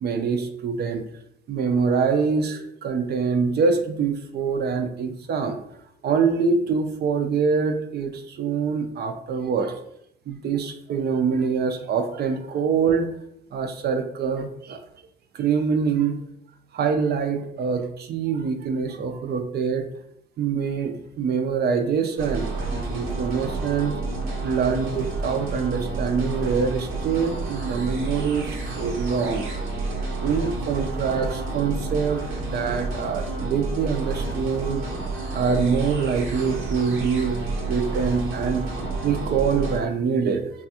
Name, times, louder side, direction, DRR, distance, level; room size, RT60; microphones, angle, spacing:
voice 1, 0.0-1.0 1.5-5.6 6.0-9.8 10.3-13.1 13.5-14.8 15.3-16.2 16.7-19.9 20.4-24.0 24.4-29.5 30.2-34.8 35.3-37.4 37.7-38.6 39.0-40.5, right 5 dB, 55° right, 6 dB, 0.4 m, -25 dB
sound 1, 22.2-39.8, right 3 dB, 80° right, 0.7 m, -30 dB
3.3 x 2.3 x 2.7 m, 0.75 s
cardioid pair, 90°, 20 cm